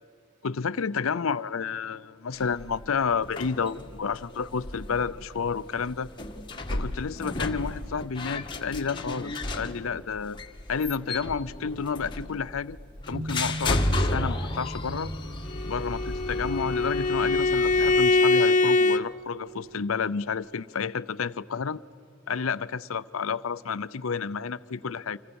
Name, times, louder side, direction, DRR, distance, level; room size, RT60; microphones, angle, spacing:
voice 1, 0.4-6.1 6.7-10.4 10.7-12.8 13.1-15.1 15.6-21.8 22.3-25.2, left 5 dB, 80° left, 16 dB, 0.6 m, -30 dB
sound 1, 2.3-18.0, left 1 dB, 25° left, 1.6 m, -34 dB
sound 2, 13.0-16.5 16.9-17.1, equal, 70° right, 2.4 m, -37 dB
Bowed string instrument, 15.5-19.0, left 3 dB, 40° left, 0.7 m, -23 dB
30.0 x 26.5 x 7.1 m, 2.7 s
head